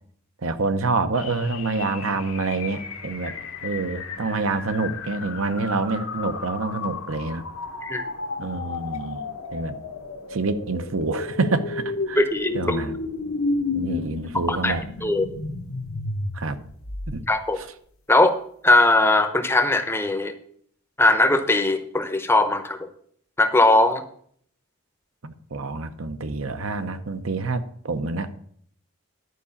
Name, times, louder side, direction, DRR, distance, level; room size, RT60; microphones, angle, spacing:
voice 1, 0.4-3.3 3.6-7.4 8.4-9.3 9.5-9.8 10.3-12.2 12.5-13.0 13.7-14.8 16.3-16.6 17.1-17.2 17.6-17.7 25.2-28.4, right 3 dB, 65° right, 11 dB, 0.8 m, -27 dB
sound 1, 1.2-17.5, left 3 dB, 70° left, 1.0 m, -33 dB
voice 2, 12.1-12.8 14.5-14.7 15.0-15.3 17.3-17.6 18.1-18.4 18.6-20.3 21.0-22.9 23.4-24.0, left 2 dB, 10° left, 8 dB, 0.7 m, -19 dB
11.5 x 4.8 x 7.0 m, 0.62 s
head